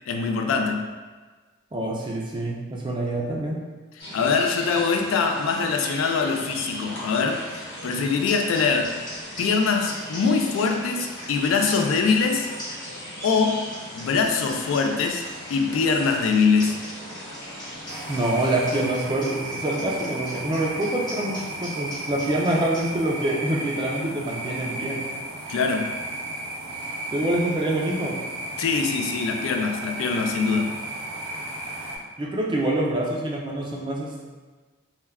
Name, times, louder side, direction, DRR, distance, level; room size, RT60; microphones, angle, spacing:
voice 1, 0.1-0.9 4.1-9.0 9.4-12.5 13.2-13.6 13.9-15.2 15.5-16.8 25.5-25.9 28.6-30.7, left 5 dB, 80° left, 3 dB, 0.3 m, -23 dB
voice 2, 1.7-3.6 18.1-25.1 27.1-28.2 32.2-34.2, right 1 dB, 25° right, -2 dB, 0.3 m, -26 dB
sound 1, 4.0-18.8, equal, 50° left, 0.9 m, -38 dB
sound 2, 7.9-8.0 8.3-22.9, equal, 20° left, 0.7 m, -41 dB
sound 3, 17.9-32.0, right 1 dB, 85° right, 0.5 m, -34 dB
2.2 x 2.2 x 3.4 m, 1.4 s
head